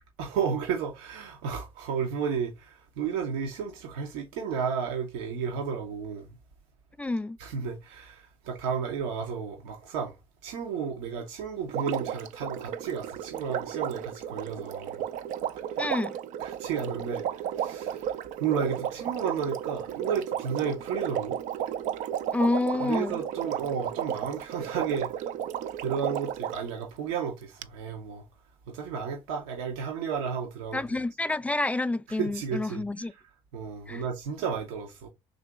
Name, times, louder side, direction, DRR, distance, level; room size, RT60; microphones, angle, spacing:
voice 1, 0.2-6.3 7.4-10.2 10.4-15.0 16.4-21.4 22.8-25.3 25.8-28.2 28.7-30.8 32.2-33.1 33.5-35.1, right 6 dB, 85° right, 0.8 m, -33 dB
voice 2, 7.0-7.4 15.8-16.2 22.3-23.2 30.7-33.1 33.9-34.0, left 2 dB, 10° left, 0.3 m, -28 dB
Water, 11.7-26.7 27.6-27.7, right 10 dB, 70° right, 0.4 m, -33 dB
3.8 x 2.9 x 3.5 m
supercardioid pair, 70°, 14 cm